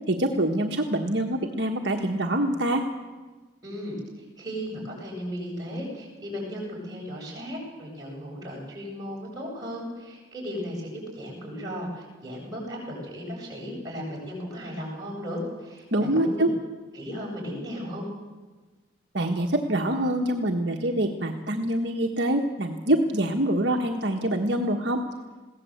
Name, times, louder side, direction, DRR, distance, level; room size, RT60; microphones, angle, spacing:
voice 1, 0.1-2.8 15.9-16.5 19.1-25.0, right 1 dB, 60° right, 1 dB, 1.5 m, -25 dB
voice 2, 3.6-16.5 16.9-18.1, equal, 20° right, -4 dB, 7.4 m, -36 dB
22.0 x 16.5 x 8.0 m, 1.3 s
head